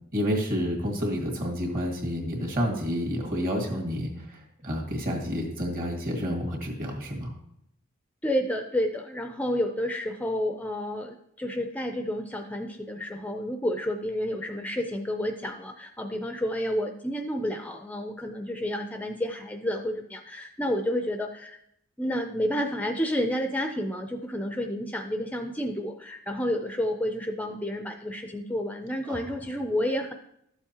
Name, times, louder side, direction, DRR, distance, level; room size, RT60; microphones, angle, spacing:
voice 1, 0.1-7.3 29.1-29.2, equal, 45° right, 1 dB, 1.9 m, -29 dB
voice 2, 8.2-21.6 22.0-30.1, equal, 10° left, 5 dB, 0.4 m, -30 dB
12.5 x 7.1 x 2.9 m, 0.75 s
head